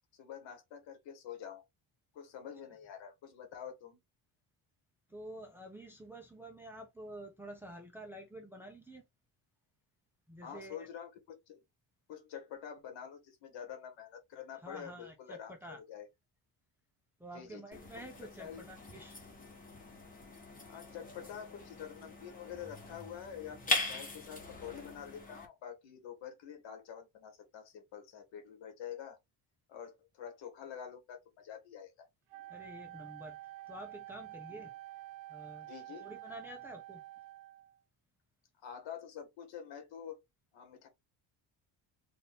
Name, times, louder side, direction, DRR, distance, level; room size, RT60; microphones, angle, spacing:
voice 1, 0.1-1.6 2.1-4.0 10.4-11.6 12.1-16.1 17.3-17.8 18.4-18.6 20.6-29.2 29.7-32.1 34.5-34.6 35.6-36.1 38.6-40.2 40.5-40.9, left 8 dB, 70° left, 1.6 m, -47 dB
voice 2, 5.1-9.0 10.3-10.9 14.6-15.8 17.2-19.2 32.5-33.4 33.7-34.7 35.3-35.7 36.0-37.0, right 1 dB, 5° right, 0.6 m, -49 dB
sound 1, 17.7-25.5, left 2 dB, 20° left, 1.2 m, -41 dB
Wind instrument woodwind instrument, 32.3-37.8, right 16 dB, 70° right, 0.8 m, -49 dB
4.2 x 2.6 x 3.5 m
cardioid pair, 175°, 46 cm